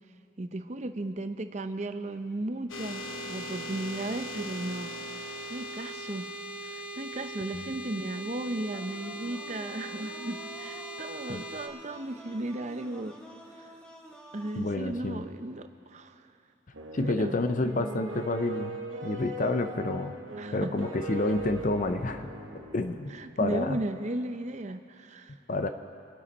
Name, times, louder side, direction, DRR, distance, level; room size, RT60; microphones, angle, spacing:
voice 1, 0.4-4.9 5.5-6.3 6.6-13.2 13.5-13.7 14.3-16.3 17.0-17.4 20.4-20.9 23.1-25.4, right 2 dB, 35° right, 9 dB, 0.6 m, -35 dB
sound 1, 2.7-11.7, right 1 dB, 85° left, 1.1 m, -39 dB
sound 2, 8.7-14.7, equal, 5° left, 1.0 m, -50 dB
voice 2, 14.6-15.2 16.9-20.1 20.5-22.3 22.7-23.8 25.5-25.7, left 2 dB, 40° left, 8 dB, 0.6 m, -29 dB
sound 3, 16.7-23.7, right 1 dB, 80° right, 1.2 m, -39 dB
25.5 x 9.6 x 4.2 m, 2.5 s
head